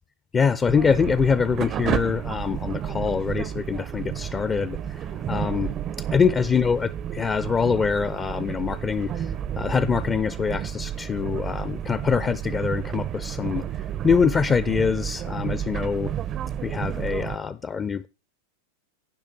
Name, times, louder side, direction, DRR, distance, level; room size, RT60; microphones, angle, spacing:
voice 1, 0.3-5.7 6.1-16.1 16.6-18.1, left 6 dB, 20° left, 0.5 m, -24 dB
sound 1, 0.7-17.4, right 10 dB, 30° right, 0.5 m, -31 dB
11.5 x 10.5 x 3.4 m
figure-of-eight pair, 90°, 0 cm